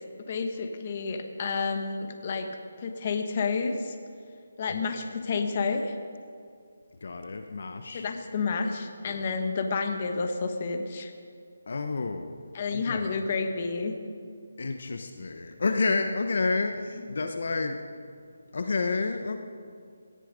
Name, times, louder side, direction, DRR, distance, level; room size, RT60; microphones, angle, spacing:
voice 1, 0.3-2.5 2.8-4.0 4.6-5.9 7.9-11.1 12.5-14.0, left 4 dB, 30° left, 6 dB, 1.2 m, -30 dB
voice 2, 7.0-8.1 9.0-9.2 11.7-12.4 12.7-13.1 14.6-17.8 18.5-19.4, left 3 dB, 50° left, 7 dB, 0.9 m, -30 dB
18.0 x 14.0 x 5.2 m, 2.4 s
hypercardioid pair, 175°, 0 cm